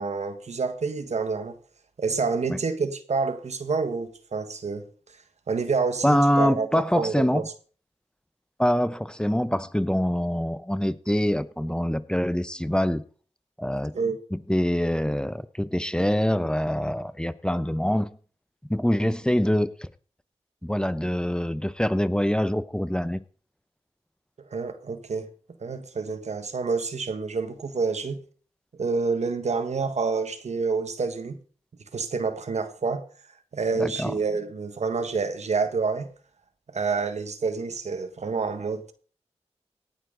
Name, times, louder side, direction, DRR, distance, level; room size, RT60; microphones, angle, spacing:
voice 1, 0.0-1.5 2.0-4.9 5.5-7.4 13.9-14.2 24.5-25.3 25.6-28.2 28.8-31.4 31.9-33.1 33.5-36.1 36.7-38.9, right 4 dB, 75° right, 1.5 m, -28 dB
voice 2, 6.0-7.5 8.6-13.0 13.6-14.0 14.3-18.1 18.7-19.9 20.6-23.2 33.7-34.1, equal, 5° left, 0.8 m, -25 dB
18.0 x 9.7 x 3.9 m
cardioid pair, 45°, 12 cm